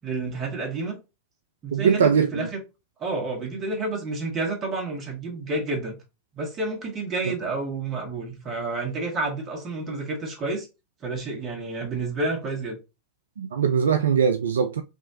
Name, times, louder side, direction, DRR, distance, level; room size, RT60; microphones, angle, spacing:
voice 1, 0.0-1.0 1.6-2.6 3.0-5.9 6.3-10.7 11.0-12.8, right 3 dB, 25° right, 1.6 m, -30 dB
voice 2, 1.7-2.5 13.4-14.8, right 7 dB, 65° right, 0.4 m, -21 dB
3.6 x 3.0 x 2.7 m
figure-of-eight pair, 90°, 0 cm